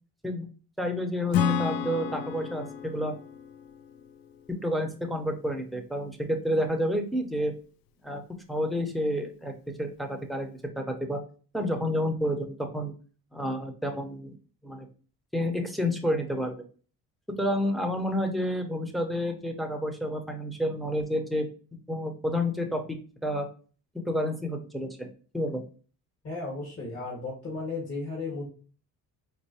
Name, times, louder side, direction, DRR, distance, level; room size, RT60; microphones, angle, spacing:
voice 1, 0.8-3.1 4.6-7.5 8.0-8.2 8.5-9.5 9.8-10.5 10.8-11.2 11.5-12.9 13.3-14.3 14.6-14.9 15.3-16.6 17.4-21.5 21.9-22.8 23.2-23.5 23.9-25.1 25.3-25.6, equal, ahead, 3 dB, 0.7 m, -29 dB
Acoustic guitar / Strum, 1.3-4.9, left 6 dB, 70° left, 0.5 m, -31 dB
voice 2, 26.2-28.5, left 3 dB, 45° left, -4 dB, 1.7 m, -34 dB
4.5 x 2.5 x 2.8 m, 0.39 s
cardioid pair, 95°, 36 cm